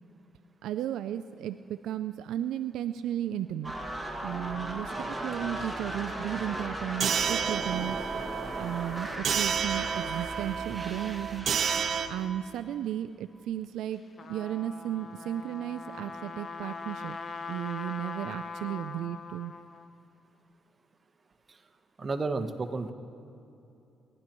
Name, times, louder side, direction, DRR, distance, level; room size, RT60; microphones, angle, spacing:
voice 1, 0.6-3.7 4.2-8.0 8.6-11.5 12.1-14.0 14.3-17.2 17.5-19.5, right 11 dB, 85° right, 10 dB, 0.3 m, -34 dB
sound 1, 3.6-11.8, right 1 dB, 10° right, 1.9 m, -37 dB
sound 2, 7.0-12.1, right 7 dB, 60° right, 0.8 m, -30 dB
Trumpet, 13.9-19.9, left 4 dB, 45° left, 0.8 m, -41 dB
voice 2, 22.0-22.9, right 3 dB, 30° right, 6 dB, 1.0 m, -32 dB
29.5 x 11.5 x 3.0 m, 2.7 s
cardioid pair, 90°, 0 cm